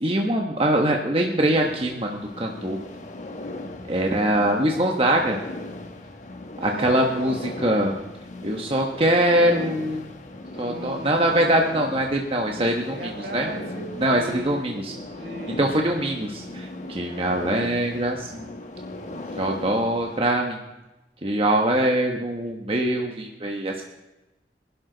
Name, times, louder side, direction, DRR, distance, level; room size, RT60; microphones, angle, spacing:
voice 1, 0.0-2.8 3.9-5.4 6.6-7.9 8.4-10.1 10.6-13.5 14.0-14.9 15.6-18.5 19.1-20.6 21.2-23.8, right 1 dB, 30° right, 1 dB, 1.2 m, -23 dB
sound 1, 1.3-20.2, left 2 dB, 45° left, 1.4 m, -38 dB
voice 2, 6.6-7.5 10.6-11.6 12.8-15.8, right 1 dB, 60° right, 3 dB, 2.1 m, -37 dB
24.0 x 11.5 x 4.0 m, 1.0 s
head